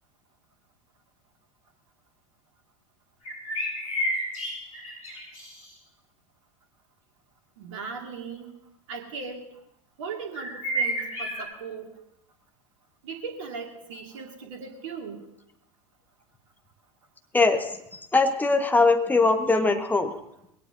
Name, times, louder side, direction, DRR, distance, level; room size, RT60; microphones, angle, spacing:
sound 1, 3.2-5.7 10.3-11.4, right 1 dB, 75° left, 7.7 m, -30 dB
voice 1, 7.6-8.5 8.9-9.5 10.0-11.9 13.0-15.2, right 5 dB, 60° right, 3 dB, 2.3 m, -38 dB
voice 2, 17.3-20.1, left 3 dB, 10° left, 5 dB, 1.5 m, -22 dB
21.0 x 17.5 x 2.8 m, 0.80 s
figure-of-eight pair, 80°, 18 cm